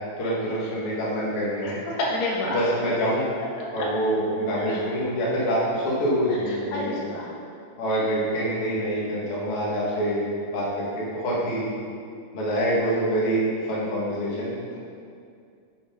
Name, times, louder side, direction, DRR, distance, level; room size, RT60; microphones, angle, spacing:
voice 1, 0.2-1.8 2.4-3.2 3.7-7.0 7.8-11.7 12.3-14.5, right 1 dB, 40° left, -7 dB, 2.3 m, -26 dB
voice 2, 1.6-2.6 4.5-4.8 6.7-7.3 14.3-14.8, left 2 dB, 80° left, -3 dB, 3.2 m, -30 dB
8.8 x 7.7 x 4.0 m, 2.3 s
omnidirectional pair, 4.7 m